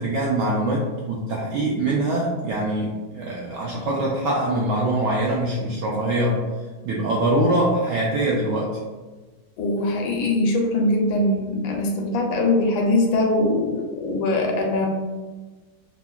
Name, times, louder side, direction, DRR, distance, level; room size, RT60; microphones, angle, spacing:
voice 1, 0.0-6.4 6.8-8.8, right 1 dB, 80° right, -4 dB, 0.9 m, -23 dB
voice 2, 9.6-14.9, left 2 dB, 80° left, 1 dB, 1.3 m, -22 dB
5.6 x 2.1 x 2.3 m, 1.3 s
omnidirectional pair, 2.3 m